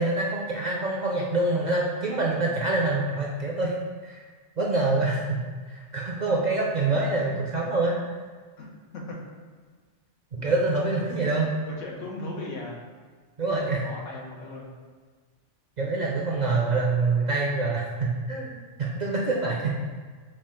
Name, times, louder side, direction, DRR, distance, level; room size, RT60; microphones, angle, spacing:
voice 1, 0.0-3.7 4.0-4.2 4.6-5.4 5.7-8.0 10.4-11.5 13.4-13.9 15.8-19.7, right 3 dB, 55° right, -3 dB, 0.5 m, -26 dB
voice 2, 6.9-7.4 8.6-9.2 10.3-10.5 11.7-12.8 13.8-14.7 16.5-16.8, left 2 dB, 90° left, -2 dB, 1.2 m, -38 dB
6.1 x 2.3 x 3.6 m, 1.5 s
omnidirectional pair, 1.2 m